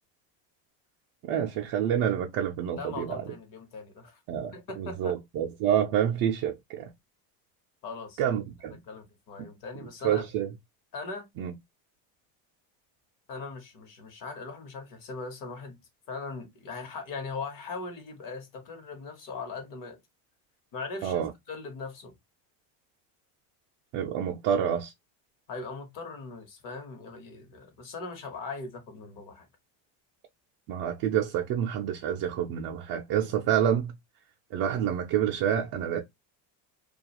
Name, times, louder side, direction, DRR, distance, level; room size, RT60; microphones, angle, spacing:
voice 1, 1.2-3.2 4.3-6.9 8.2-8.8 10.0-10.5 11.4-11.5 21.0-21.3 23.9-24.9 30.7-33.9 34.5-36.0, right 9 dB, 50° right, 0.4 m, -28 dB
voice 2, 2.7-4.2 4.5-5.1 7.8-8.2 8.9-10.3 10.9-11.3 13.3-15.8 16.1-20.0 20.7-22.1 25.5-29.5, left 4 dB, 45° left, 1.0 m, -40 dB
2.3 x 2.3 x 2.8 m
cardioid pair, 140°, 44 cm